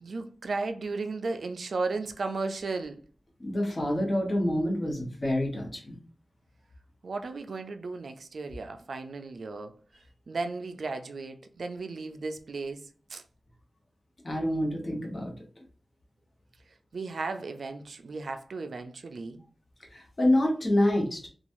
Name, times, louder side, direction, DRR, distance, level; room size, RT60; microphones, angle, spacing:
voice 1, 0.0-3.0 7.0-9.7 10.3-13.2 16.9-19.4, right 3 dB, 80° right, 0.3 m, -35 dB
voice 2, 3.4-6.0 14.2-15.3 19.9-21.3, left 1 dB, 35° left, 1.0 m, -27 dB
3.0 x 2.3 x 2.6 m
wide cardioid pair, 90°, 0 cm